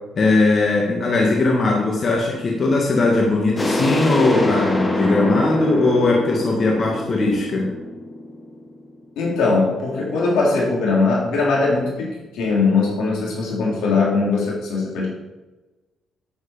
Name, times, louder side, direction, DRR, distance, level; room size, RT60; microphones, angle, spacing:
voice 1, 0.2-7.7, left 2 dB, 45° left, -1 dB, 1.8 m, -19 dB
sound 1, 3.6-9.0, left 1 dB, 20° left, 1.7 m, -25 dB
voice 2, 9.2-15.1, left 3 dB, 85° left, -4 dB, 3.8 m, -20 dB
9.0 x 8.1 x 5.1 m, 1.1 s
cardioid pair, 90°, 0 cm